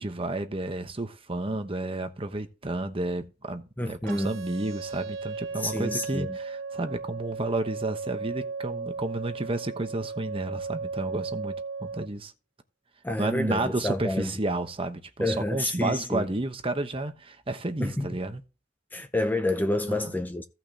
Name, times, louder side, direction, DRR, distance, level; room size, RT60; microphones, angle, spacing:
voice 1, 0.0-12.3 13.2-18.4 19.9-20.1, right 2 dB, 30° right, 1.0 m, -31 dB
voice 2, 3.8-4.3 5.6-6.4 13.0-14.3 15.2-16.3 17.8-18.1 18.9-20.4, left 1 dB, 10° left, 0.6 m, -28 dB
sound 1, 4.1-12.1, right 4 dB, 90° right, 0.8 m, -36 dB
16.5 x 5.8 x 2.9 m
head